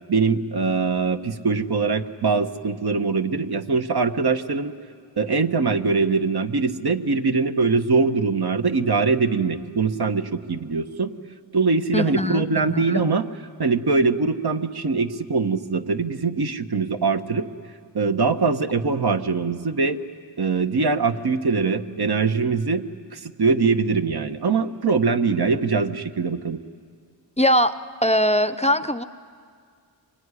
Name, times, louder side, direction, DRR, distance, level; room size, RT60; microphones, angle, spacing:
voice 1, 0.1-4.7 5.2-11.1 11.5-13.2 13.6-17.5 17.9-20.0 20.4-22.8 23.1-26.6, right 4 dB, 55° right, 7 dB, 1.4 m, -22 dB
voice 2, 11.9-13.0 27.4-27.7 28.0-29.0, equal, 15° left, 12 dB, 0.7 m, -21 dB
26.0 x 23.0 x 9.9 m, 2.1 s
cardioid pair, 60°, 45 cm